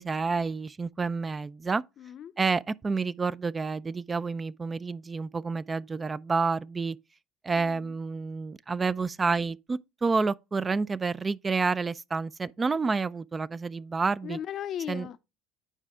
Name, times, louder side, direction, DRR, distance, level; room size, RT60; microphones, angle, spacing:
voice 1, 0.0-1.8 2.4-7.0 7.4-14.4 14.9-15.1, right 4 dB, 25° right, 0.4 m, -29 dB
voice 2, 2.0-2.3 7.6-7.8 14.2-15.2, left 10 dB, 50° left, 0.6 m, -36 dB
9.9 x 4.8 x 3.5 m
hypercardioid pair, 70°, 0 cm